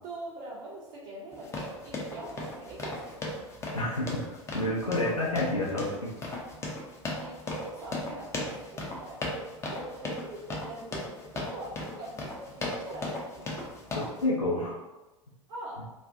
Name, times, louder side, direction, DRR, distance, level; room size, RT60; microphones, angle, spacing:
voice 1, 0.0-3.2 4.8-5.2 7.1-13.7 15.5-15.8, right 2 dB, 45° right, -6 dB, 0.5 m, -43 dB
sound 1, 1.3-14.3, left 2 dB, 15° left, 0.4 m, -37 dB
voice 2, 3.7-6.1 13.9-14.8, left 1 dB, 90° left, -6 dB, 0.5 m, -29 dB
2.4 x 2.1 x 2.5 m, 1.1 s
figure-of-eight pair, 85°, 17 cm